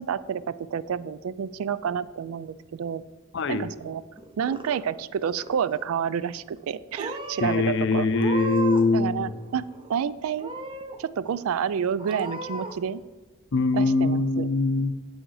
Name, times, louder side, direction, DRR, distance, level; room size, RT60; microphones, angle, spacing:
voice 1, 0.0-3.0 3.5-4.0 4.4-8.1 8.9-9.6 9.9-10.5 11.0-13.0 13.7-14.5, right 7 dB, 70° right, 18 dB, 0.3 m, -29 dB
voice 2, 3.3-3.7 7.4-9.3 13.5-15.0, left 3 dB, 55° left, 11 dB, 0.6 m, -23 dB
Purr / Meow, 4.2-5.0 5.3-5.9 6.6-6.7 7.0-7.6 8.1-9.0 9.2-10.0 10.4-11.0 11.4-11.5 12.0-12.7, right 2 dB, 25° right, 0.6 m, -36 dB
8.0 x 6.3 x 4.8 m, 1.3 s
head